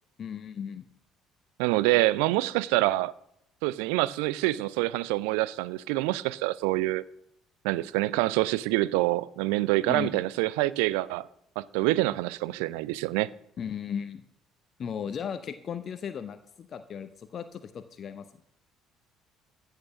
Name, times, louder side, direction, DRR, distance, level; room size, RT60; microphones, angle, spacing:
voice 1, 0.2-0.9 9.9-10.2 13.6-14.2 14.8-18.3, left 7 dB, 45° left, 0.7 m, -36 dB
voice 2, 1.6-3.1 3.6-7.0 7.6-11.3 11.6-13.3, right 18 dB, 65° right, 0.4 m, -26 dB
15.0 x 6.6 x 5.9 m
figure-of-eight pair, 50°, 0 cm